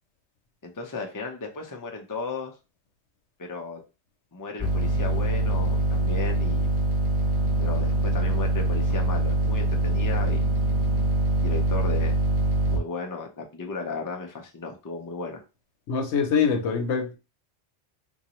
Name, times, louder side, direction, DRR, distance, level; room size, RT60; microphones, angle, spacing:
voice 1, 0.6-2.5 3.4-3.8 4.3-6.7 7.6-11.0 11.4-12.2 12.7-15.4, left 4 dB, 25° left, 0.5 m, -35 dB
sound 1, 4.6-12.8, right 1 dB, 15° right, 0.9 m, -24 dB
voice 2, 15.9-17.2, left 6 dB, 85° left, 1.1 m, -24 dB
3.8 x 2.6 x 3.0 m
omnidirectional pair, 1.1 m